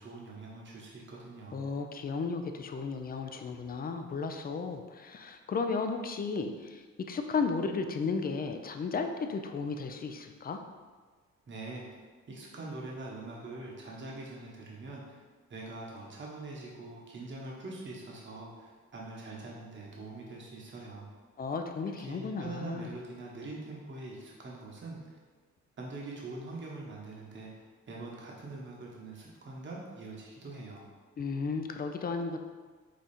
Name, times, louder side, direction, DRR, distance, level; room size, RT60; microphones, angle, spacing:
voice 1, 0.0-1.6 11.5-12.0 12.3-15.2 15.5-21.1 22.0-25.2 25.8-30.9, right 2 dB, 40° right, -3 dB, 1.0 m, -43 dB
voice 2, 1.5-10.6 21.4-22.9 31.2-32.4, left 4 dB, 30° left, 6 dB, 0.4 m, -34 dB
5.1 x 2.3 x 4.2 m, 1.4 s
cardioid pair, 90°, 30 cm